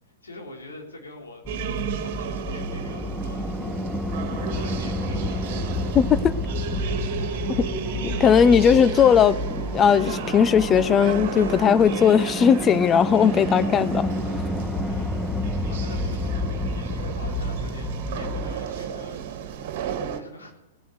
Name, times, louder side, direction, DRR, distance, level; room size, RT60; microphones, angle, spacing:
voice 1, 0.2-1.4 1.9-3.5 4.6-5.5 7.0-7.7 14.7-19.5 20.2-20.5, left 1 dB, 80° left, 3.9 m, -44 dB
sound 1, 1.4-18.6, left 1 dB, 5° left, 1.3 m, -29 dB
sound 2, 1.5-20.2, right 8 dB, 50° right, 1.7 m, -34 dB
voice 2, 5.9-6.4 7.6-7.7 8.0-14.1, left 7 dB, 25° left, 0.7 m, -18 dB
sound 3, 6.6-16.2, right 3 dB, 80° right, 1.3 m, -42 dB
18.5 x 7.8 x 8.0 m
figure-of-eight pair, 110°, 0 cm